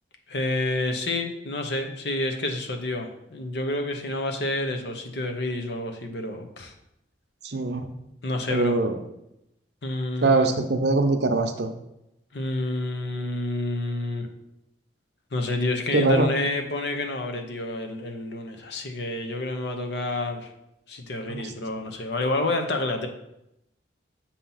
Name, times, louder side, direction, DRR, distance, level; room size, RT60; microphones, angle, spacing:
voice 1, 0.3-6.7 8.2-8.8 9.8-10.5 12.3-14.3 15.3-20.5 20.9-23.1, left 2 dB, 65° left, 5 dB, 0.8 m, -29 dB
voice 2, 7.4-7.9 8.5-9.0 10.2-11.7 15.9-16.3 21.3-21.4, right 3 dB, 65° right, 6 dB, 0.7 m, -22 dB
7.1 x 2.8 x 5.5 m, 0.84 s
head